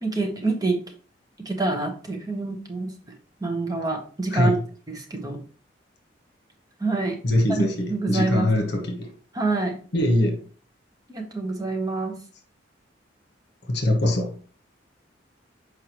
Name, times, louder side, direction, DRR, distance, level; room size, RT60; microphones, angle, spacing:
voice 1, 0.0-0.8 1.4-2.9 3.4-4.6 4.9-5.4 6.8-7.2 7.5-7.6 7.9-8.5 9.3-9.8 11.1-12.2, right 3 dB, 20° right, 1.1 m, -26 dB
voice 2, 7.2-9.1 9.9-10.4 13.7-14.4, left 1 dB, 65° left, 1.2 m, -22 dB
6.6 x 4.7 x 3.0 m
head